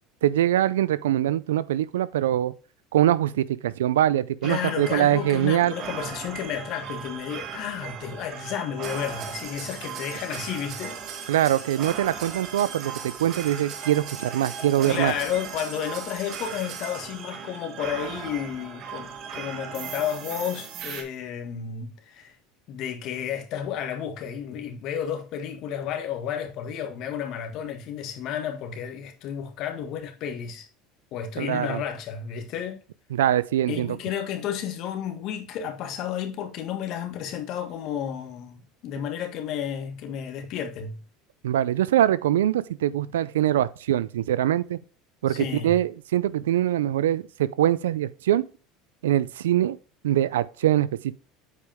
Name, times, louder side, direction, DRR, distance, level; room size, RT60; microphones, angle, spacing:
voice 1, 0.2-2.5 2.9-5.7 11.3-15.1 31.4-31.8 33.1-34.0 41.4-44.8 45.2-48.4 49.0-49.8 50.0-50.9, right 12 dB, 85° right, 0.4 m, -23 dB
voice 2, 4.4-11.0 14.9-22.4 22.7-30.7 31.1-32.8 33.7-41.0 45.3-45.8, left 9 dB, 60° left, 1.8 m, -32 dB
sound 1, 4.4-21.0, right 7 dB, 50° right, 1.8 m, -37 dB
8.3 x 5.2 x 3.5 m
hypercardioid pair, 85°, 0 cm